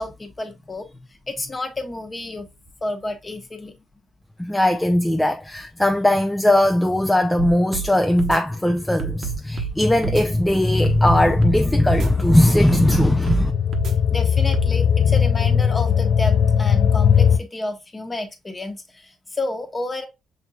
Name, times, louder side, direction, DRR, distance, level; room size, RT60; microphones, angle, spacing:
voice 1, 0.0-2.5 2.8-3.8 14.1-20.1, left 2 dB, 25° left, 1.0 m, -31 dB
voice 2, 4.4-13.5, left 1 dB, 5° left, 0.4 m, -19 dB
sound 1, 7.4-7.9 8.2-8.4 9.0-9.7 10.0-10.2 10.8-11.6 11.9-12.1 12.7-13.4 13.7-13.9 14.5-14.7, right 8 dB, 65° right, 0.8 m, -28 dB
sound 2, 9.8-17.4, left 7 dB, 75° left, 0.5 m, -20 dB
5.8 x 2.8 x 2.3 m
cardioid pair, 90°, 0 cm